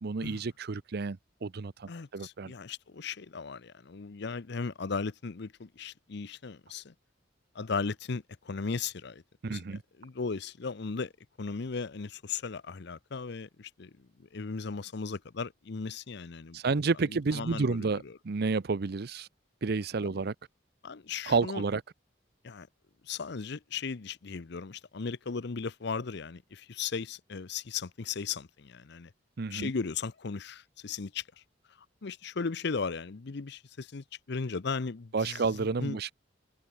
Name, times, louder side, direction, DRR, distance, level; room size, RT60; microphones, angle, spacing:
voice 1, 0.0-2.5 9.4-9.8 16.5-19.3 19.6-20.3 21.3-21.8 29.4-29.7 35.1-36.1, right 4 dB, 60° right, 0.6 m, -30 dB
voice 2, 1.9-6.9 7.5-9.2 9.5-11.1 11.4-13.9 14.3-16.7 17.3-17.9 20.0-20.2 20.8-21.6 22.4-22.7 23.0-29.1 29.5-31.2 32.0-35.4 35.8-36.0, left 5 dB, 65° left, 0.7 m, -36 dB
head